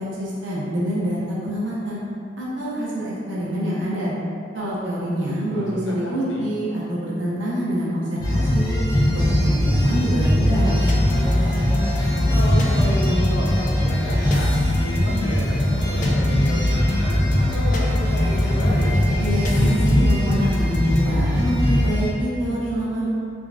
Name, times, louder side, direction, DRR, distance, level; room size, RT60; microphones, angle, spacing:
voice 1, 0.0-2.0 2.4-4.1 4.5-8.8 9.1-10.8 19.2-23.1, equal, 90° right, -7 dB, 0.9 m, -26 dB
voice 2, 5.5-6.5 12.3-19.0, left 1 dB, 85° left, -4 dB, 0.8 m, -31 dB
sound 1, 8.2-22.1, left 1 dB, 20° left, 0.9 m, -20 dB
sound 2, 10.9-21.2, left 2 dB, 45° left, 0.4 m, -32 dB
3.7 x 3.5 x 2.4 m, 2.4 s
head